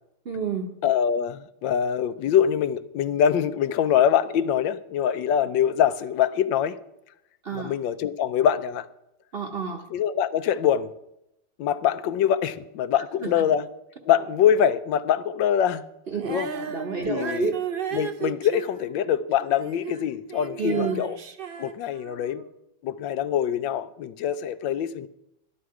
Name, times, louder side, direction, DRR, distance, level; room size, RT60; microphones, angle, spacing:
voice 1, 0.2-0.7 7.4-7.7 9.3-9.9 13.2-13.3 16.1-17.5 20.6-21.0, right 6 dB, 40° right, 1.0 m, -29 dB
voice 2, 0.8-6.8 7.5-8.9 9.9-10.9 11.6-13.6 14.1-15.8 16.3-16.5 17.1-17.5 17.9-21.2 21.6-22.4 22.8-25.1, left 9 dB, 80° left, 1.3 m, -24 dB
Female singing, 16.2-20.0 20.3-22.4, right 7 dB, 90° right, 0.4 m, -35 dB
12.5 x 11.0 x 4.7 m
omnidirectional pair, 2.0 m